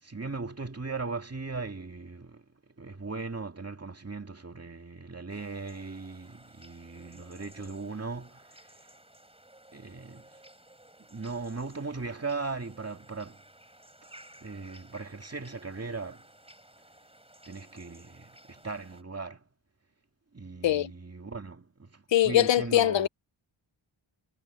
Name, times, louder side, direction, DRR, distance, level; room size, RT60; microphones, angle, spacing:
voice 1, 0.0-2.4 2.8-8.7 9.7-10.3 11.1-13.4 14.4-16.3 17.4-19.4 20.3-23.1, right 4 dB, 30° right, 2.3 m, -38 dB
sound 1, 5.3-19.0, right 1 dB, 10° right, 3.7 m, -55 dB
voice 2, 22.1-23.1, left 13 dB, 60° left, 0.6 m, -22 dB
wide cardioid pair, 80°, 50 cm